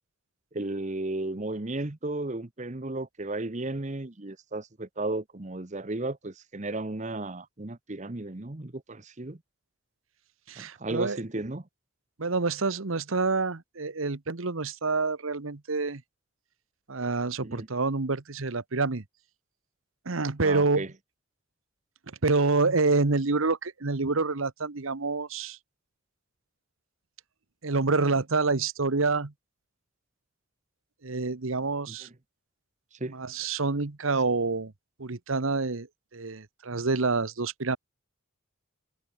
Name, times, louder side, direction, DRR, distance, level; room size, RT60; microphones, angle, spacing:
voice 1, 0.5-9.4 10.6-11.6 17.4-17.7 20.4-20.9 31.9-32.0 33.0-33.2, right 2 dB, 35° right, 1.0 m, -34 dB
voice 2, 10.5-11.2 12.2-16.0 16.9-19.0 20.1-20.8 22.2-25.6 27.6-29.3 31.0-32.1 33.1-34.7 35.0-35.9 36.1-37.8, right 3 dB, 75° right, 1.1 m, -27 dB
head